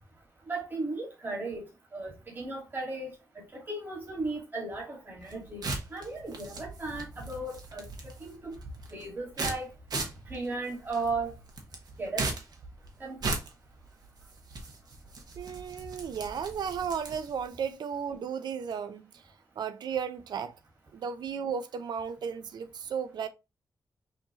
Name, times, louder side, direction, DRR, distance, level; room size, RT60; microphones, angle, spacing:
voice 1, 0.5-1.6 1.9-7.9 8.2-8.5 8.9-9.7 10.3-11.3 12.0-12.3 13.0-13.3, right 3 dB, 30° right, 1.8 m, -36 dB
sound 1, 5.2-17.4, right 3 dB, 70° right, 1.1 m, -39 dB
voice 2, 15.4-19.1 19.6-20.5 20.9-23.3, right 7 dB, 90° right, 0.5 m, -34 dB
5.8 x 2.7 x 2.9 m
wide cardioid pair, 165°, 7 cm